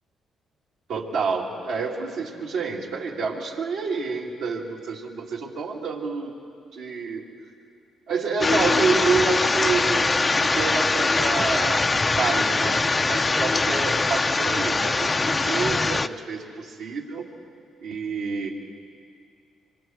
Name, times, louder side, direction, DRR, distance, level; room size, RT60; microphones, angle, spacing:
voice 1, 0.9-6.3 6.7-7.2 8.1-11.9 12.2-17.2 17.8-18.5, right 4 dB, 85° right, -4 dB, 2.7 m, -28 dB
sound 1, 8.4-16.1, left 3 dB, 30° left, 0.6 m, -22 dB
25.0 x 23.5 x 4.7 m, 2.4 s
supercardioid pair, 55°, 0 cm